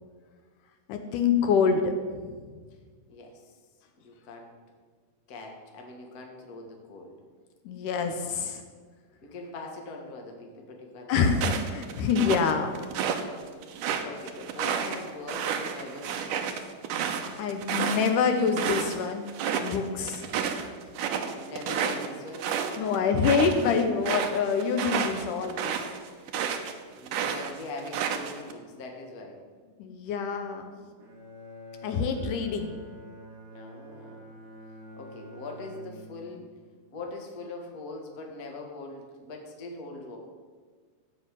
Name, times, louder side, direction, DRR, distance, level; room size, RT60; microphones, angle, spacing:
voice 1, 0.9-2.2 7.7-8.6 11.1-12.7 17.4-19.3 19.6-20.2 22.8-25.7 29.8-30.7 31.8-32.8, left 5 dB, 75° left, 6 dB, 2.3 m, -26 dB
voice 2, 3.1-3.5 4.0-4.5 5.3-7.2 9.2-11.4 13.5-13.6 14.0-16.6 21.0-22.9 27.0-29.4 31.9-32.3 33.5-34.3 35.0-36.5 36.9-40.2, left 2 dB, 35° left, 1 dB, 1.6 m, -42 dB
sound 1, 11.3-13.2 13.6-19.0 19.3-19.8 20.1-26.7 27.1-28.5, right 7 dB, 75° right, 2.4 m, -31 dB
Bowed string instrument, 31.0-36.5, equal, 60° right, 3.1 m, -46 dB
15.0 x 5.6 x 8.9 m, 1.6 s
omnidirectional pair, 3.9 m